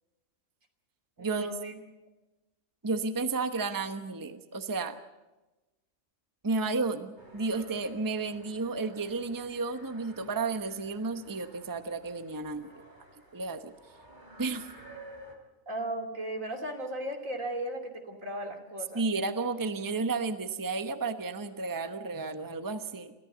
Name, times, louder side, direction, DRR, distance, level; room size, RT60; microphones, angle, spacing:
voice 1, 1.2-1.7 15.7-19.0, right 1 dB, 75° right, 4 dB, 3.2 m, -36 dB
voice 2, 2.8-5.0 6.4-12.7 13.3-13.7 14.4-14.7 18.9-23.1, right 3 dB, 15° right, 8 dB, 1.0 m, -32 dB
sound 1, 7.2-15.3, right 1 dB, 35° right, 3.6 m, -53 dB
27.5 x 14.5 x 8.0 m, 1.1 s
omnidirectional pair, 1.4 m